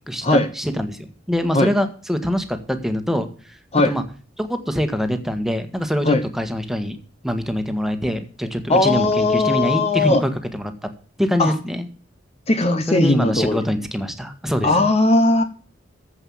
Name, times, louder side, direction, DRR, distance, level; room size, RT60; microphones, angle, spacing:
voice 1, 0.1-1.0 1.3-3.5 3.8-4.0 4.4-7.0 7.2-10.7 11.2-11.9 12.9-14.9, equal, ahead, 7 dB, 1.6 m, -24 dB
voice 2, 8.7-10.2 11.4-11.5 12.5-13.6 14.6-15.4, left 2 dB, 35° left, 9 dB, 1.0 m, -18 dB
15.0 x 5.6 x 7.2 m, 0.43 s
head